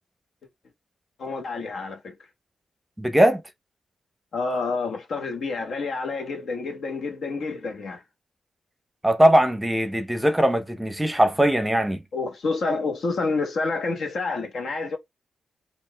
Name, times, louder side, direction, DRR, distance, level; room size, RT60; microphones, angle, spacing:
voice 1, 1.2-2.1 4.3-8.0 12.1-15.0, left 3 dB, 70° left, 1.2 m, -28 dB
voice 2, 3.0-3.4 9.0-12.0, right 1 dB, 10° right, 0.7 m, -20 dB
4.3 x 2.5 x 3.3 m
cardioid pair, 90°, 0 cm